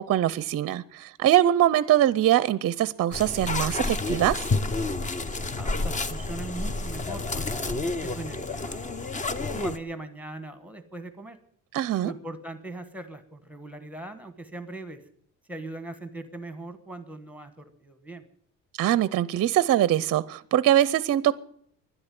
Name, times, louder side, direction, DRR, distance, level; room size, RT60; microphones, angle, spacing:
voice 1, 0.0-4.4 11.7-12.1 18.8-21.3, right 12 dB, 45° right, 0.5 m, -23 dB
sound 1, 3.1-9.8, left 2 dB, 20° left, 0.7 m, -29 dB
voice 2, 5.4-8.9 9.5-11.4 12.0-15.0 15.5-18.2, right 2 dB, 5° right, 1.2 m, -40 dB
12.0 x 10.5 x 9.2 m
cardioid pair, 150°, 35 cm